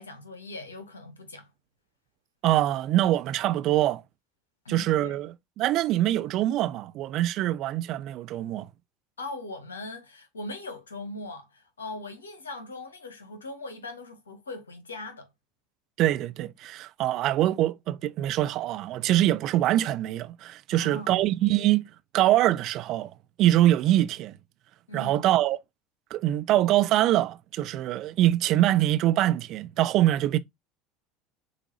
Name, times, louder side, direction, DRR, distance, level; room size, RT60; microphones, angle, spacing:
voice 1, 0.0-1.5 4.6-5.2 9.2-15.3 20.7-21.1 24.9-25.3, left 2 dB, 80° left, 1.0 m, -40 dB
voice 2, 2.4-4.0 4.7-8.7 16.0-23.1 23.4-24.4 24.9-25.6 26.1-30.4, right 14 dB, 50° right, 0.4 m, -24 dB
6.8 x 2.5 x 3.0 m
figure-of-eight pair, 70°, 0 cm